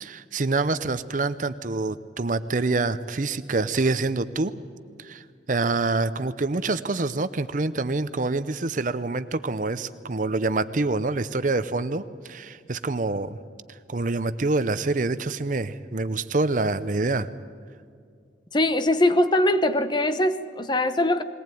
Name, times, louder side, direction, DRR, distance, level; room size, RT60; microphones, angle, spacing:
voice 1, 0.0-4.5 5.0-5.2 5.5-13.4 13.9-17.3, right 3 dB, 45° right, 13 dB, 0.7 m, -26 dB
voice 2, 18.5-21.2, left 1 dB, 25° left, 11 dB, 0.8 m, -22 dB
21.0 x 18.5 x 9.2 m, 2.2 s
head